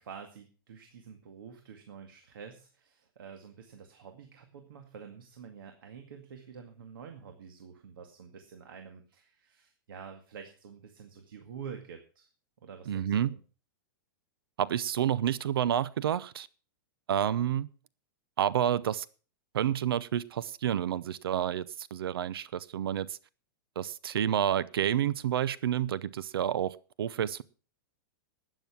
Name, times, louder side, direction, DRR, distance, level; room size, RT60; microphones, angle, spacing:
voice 1, 0.0-12.3 12.6-13.4, right 7 dB, 70° right, 5 dB, 2.1 m, -48 dB
voice 2, 12.9-13.3 14.6-16.5 17.1-17.7 18.4-19.1 19.5-23.2 23.8-27.4, right 10 dB, 90° right, 19 dB, 0.7 m, -29 dB
12.5 x 9.2 x 6.0 m, 0.37 s
supercardioid pair, 180°, 12 cm